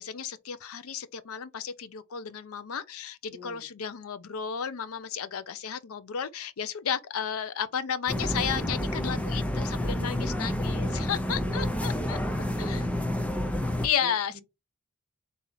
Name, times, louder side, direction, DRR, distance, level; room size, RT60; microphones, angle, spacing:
voice 1, 0.0-12.2 12.6-12.9 13.8-14.3, left 8 dB, 80° left, 0.5 m, -33 dB
voice 2, 3.3-3.7 10.8-11.7 14.0-14.4, equal, 40° right, 0.9 m, -48 dB
sound 1, 8.1-13.9, left 1 dB, 5° left, 0.5 m, -29 dB
4.1 x 2.8 x 3.8 m
head